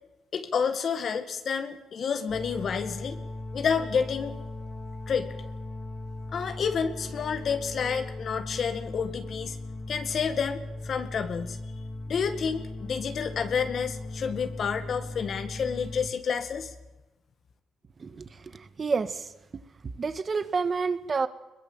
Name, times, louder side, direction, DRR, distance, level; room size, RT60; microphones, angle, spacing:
voice 1, 0.3-3.2 3.5-4.4 5.1-5.3 6.3-9.6 9.9-11.6 12.1-16.7, left 6 dB, 55° left, 8 dB, 1.9 m, -29 dB
sound 1, 2.3-16.1, left 2 dB, 35° left, 3.7 m, -38 dB
voice 2, 18.0-19.6 20.0-21.3, right 4 dB, 40° right, 12 dB, 1.6 m, -30 dB
22.0 x 21.0 x 7.5 m, 1.1 s
cardioid pair, 90°, 0 cm